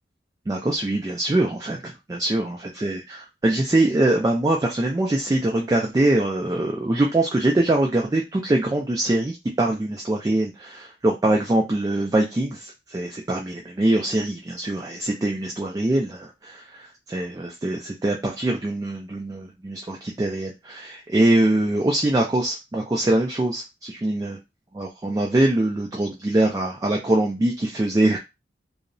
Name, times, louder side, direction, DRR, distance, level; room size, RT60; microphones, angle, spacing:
voice 1, 0.5-24.4 24.7-28.2, right 1 dB, 20° right, 0 dB, 0.3 m, -23 dB
2.7 x 2.0 x 2.6 m, 0.24 s
head